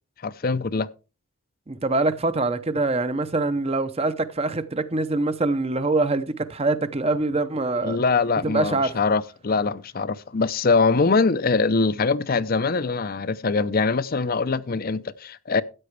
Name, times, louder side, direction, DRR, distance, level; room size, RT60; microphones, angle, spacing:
voice 1, 0.2-0.9 7.8-15.6, left 4 dB, 40° left, 0.5 m, -23 dB
voice 2, 1.7-8.0 8.4-8.9, right 2 dB, 25° right, 0.7 m, -24 dB
13.5 x 8.9 x 3.2 m
head